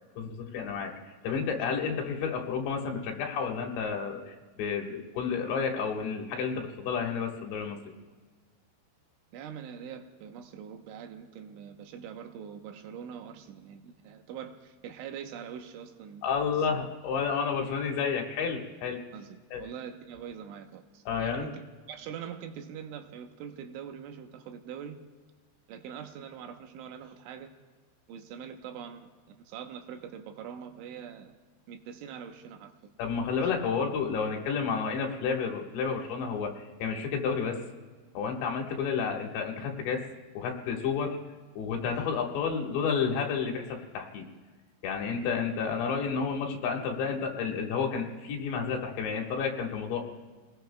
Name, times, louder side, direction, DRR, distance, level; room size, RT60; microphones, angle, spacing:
voice 1, 0.2-0.9 1.2-7.8 16.2-19.0 19.5-19.7 21.1-21.5 33.0-36.5 36.8-37.6 38.2-40.0 40.4-41.2 41.6-44.3 44.8-50.0, left 6 dB, 75° left, 1 dB, 3.7 m, -31 dB
voice 2, 9.3-16.3 16.7-16.9 19.1-25.0 25.7-27.5 28.1-31.3 31.7-32.9 41.9-42.1, right 8 dB, 85° right, 6 dB, 3.4 m, -43 dB
29.0 x 19.5 x 2.3 m, 1.4 s
omnidirectional pair, 5.3 m